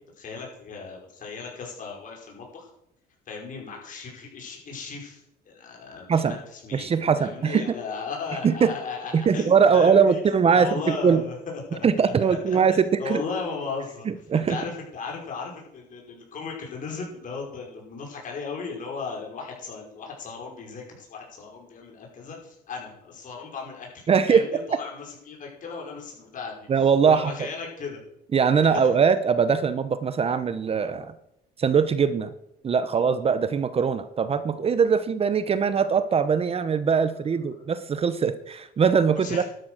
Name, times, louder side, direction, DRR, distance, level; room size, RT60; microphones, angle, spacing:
voice 1, 0.2-2.7 3.3-14.1 14.5-28.0 28.7-28.9 37.1-37.7 39.2-39.4, left 5 dB, 50° left, 0 dB, 5.5 m, -36 dB
voice 2, 6.7-7.6 8.4-8.7 9.1-11.2 11.8-13.2 14.1-14.6 24.1-24.4 26.7-27.3 28.3-31.1 31.6-32.3 32.6-39.4, right 6 dB, 35° right, 13 dB, 0.9 m, -21 dB
12.0 x 9.6 x 6.4 m, 0.79 s
cardioid pair, 110°, 17 cm